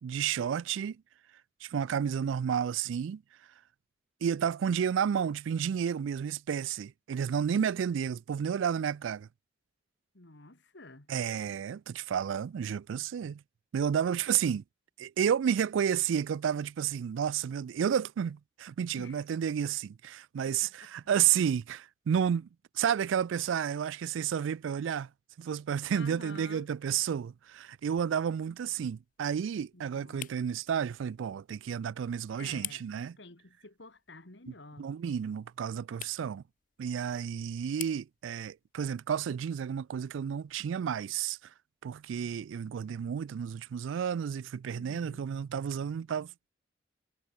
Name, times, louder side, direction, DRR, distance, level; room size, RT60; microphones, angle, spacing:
voice 1, 0.0-1.0 1.6-3.2 4.2-9.3 11.1-13.4 13.7-14.6 15.0-22.5 22.8-25.1 25.4-33.1 34.5-36.4 36.8-41.4 41.8-46.5, right 8 dB, 80° right, 0.3 m, -31 dB
voice 2, 10.1-11.1 19.0-19.2 20.5-20.9 25.9-26.7 29.7-30.3 32.4-35.0 44.7-45.3, left 2 dB, 65° left, 2.3 m, -50 dB
sound 1, 26.6-41.4, left 13 dB, 40° left, 0.7 m, -52 dB
head